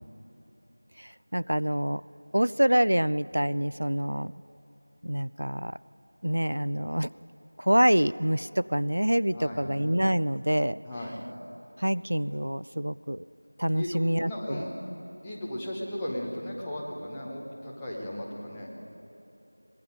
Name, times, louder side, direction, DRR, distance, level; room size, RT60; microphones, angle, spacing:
voice 1, 1.0-2.0 2.3-4.3 5.0-5.8 6.2-7.1 7.6-10.8 11.8-13.2 13.6-14.6, equal, 75° right, 19 dB, 0.4 m, -26 dB
voice 2, 9.3-9.8 10.8-11.2 13.7-14.7 15.2-18.7, left 1 dB, 5° left, -7 dB, 0.8 m, -36 dB
23.5 x 21.0 x 5.3 m, 2.9 s
figure-of-eight pair, 180°, 0 cm